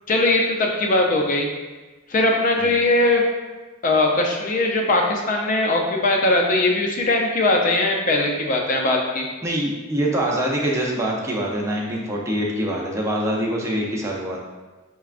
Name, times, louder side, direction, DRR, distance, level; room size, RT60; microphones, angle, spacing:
voice 1, 0.1-1.5 2.1-3.2 3.8-9.3, left 2 dB, 40° left, 1 dB, 0.5 m, -20 dB
voice 2, 9.4-14.4, right 1 dB, 15° right, -2 dB, 0.5 m, -24 dB
5.8 x 2.2 x 2.4 m, 1.2 s
head